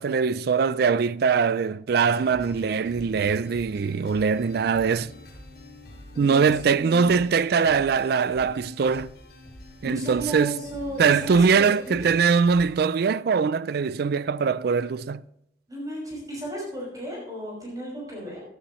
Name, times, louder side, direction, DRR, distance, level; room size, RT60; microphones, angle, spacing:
voice 1, 0.0-5.1 6.2-9.1 9.8-10.6 11.0-15.2, right 5 dB, 60° right, 0.4 m, -22 dB
sound 1, 2.0-12.7, left 1 dB, 60° left, 5.7 m, -46 dB
voice 2, 6.1-7.2 9.8-12.1 15.7-18.4, right 1 dB, 20° right, 5.8 m, -34 dB
15.5 x 13.0 x 3.1 m
head